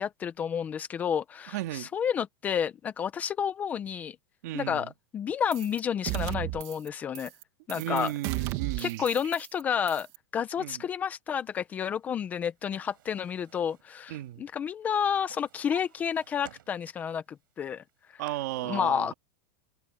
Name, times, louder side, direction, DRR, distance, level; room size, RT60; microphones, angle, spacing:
voice 1, 0.0-4.2 4.5-7.3 7.7-8.1 8.8-10.1 10.3-17.8 18.1-18.2 18.6-19.1, left 8 dB, 15° left, 0.6 m, -30 dB
voice 2, 1.5-1.9 4.4-4.9 7.7-9.0 10.6-10.8 14.1-14.5 18.2-19.1, right 16 dB, 50° right, 1.9 m, -34 dB
sound 1, 5.5-5.8 6.1-6.9 7.1-7.4 7.7-9.6 9.9-10.2, right 17 dB, 30° right, 1.9 m, -34 dB
Drawer open or close, 12.1-14.5 14.8-17.2 17.6-18.3, right 12 dB, 85° right, 7.7 m, -55 dB
supercardioid pair, 175°, 11 cm